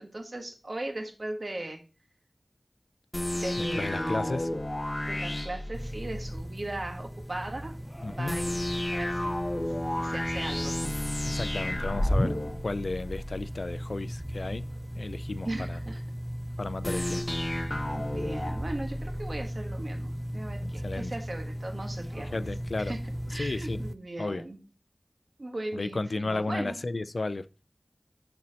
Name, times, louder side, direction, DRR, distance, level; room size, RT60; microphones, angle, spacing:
voice 1, 0.0-1.8 3.3-4.5 5.0-7.7 8.0-8.6 8.9-9.4 10.0-10.8 15.4-16.0 16.8-17.2 17.9-22.4 22.8-23.0 23.3-24.6 25.4-26.8, right 2 dB, 60° right, 1.3 m, -38 dB
sound 1, 3.1-6.4 8.3-13.5 16.8-19.5, left 1 dB, 35° left, 0.8 m, -31 dB
voice 2, 3.6-4.5 8.0-8.4 11.2-12.4 12.6-14.6 15.0-15.8 16.6-17.3 20.8-21.1 22.2-22.9 23.4-23.8 24.2-24.4 25.7-27.4, left 2 dB, 80° left, 0.4 m, -33 dB
sound 2, 5.7-23.9, equal, 5° right, 0.4 m, -37 dB
10.5 x 4.3 x 2.9 m
wide cardioid pair, 50°, 0 cm